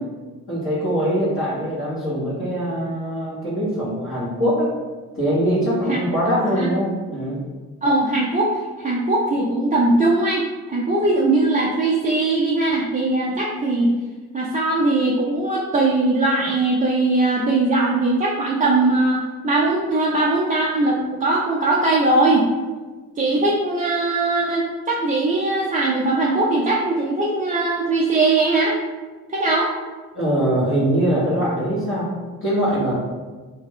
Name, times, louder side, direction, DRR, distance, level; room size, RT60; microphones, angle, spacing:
voice 1, 0.5-4.7 5.1-7.4 30.1-32.1 32.4-32.9, equal, 30° left, -11 dB, 1.5 m, -22 dB
voice 2, 6.3-6.7 7.8-8.5 8.8-10.4 10.7-13.9 14.3-22.5 23.2-28.7 29.3-29.7, right 2 dB, 20° right, -4 dB, 0.5 m, -20 dB
3.0 x 2.2 x 3.7 m, 1.3 s
hypercardioid pair, 45°, 41 cm